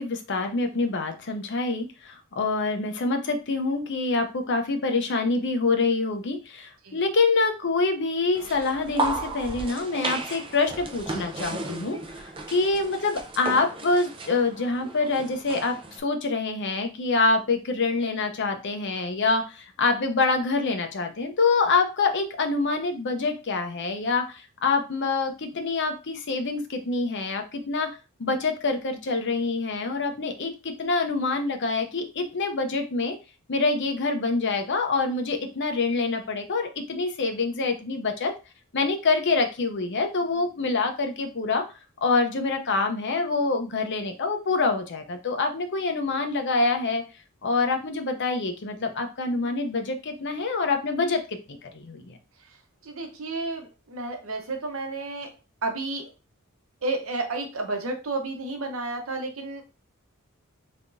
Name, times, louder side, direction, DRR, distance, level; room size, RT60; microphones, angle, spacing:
voice 1, 0.0-27.9 28.2-33.2 33.5-38.3 38.7-41.6 42.0-47.0 47.4-52.2, left 3 dB, 55° left, 5 dB, 0.7 m, -26 dB
sound 1, 8.4-16.0, right 2 dB, 25° right, 0.6 m, -34 dB
voice 2, 52.8-55.3 55.6-56.1 56.8-59.6, right 2 dB, 70° right, 4 dB, 0.9 m, -31 dB
3.5 x 3.4 x 2.6 m, 0.30 s
head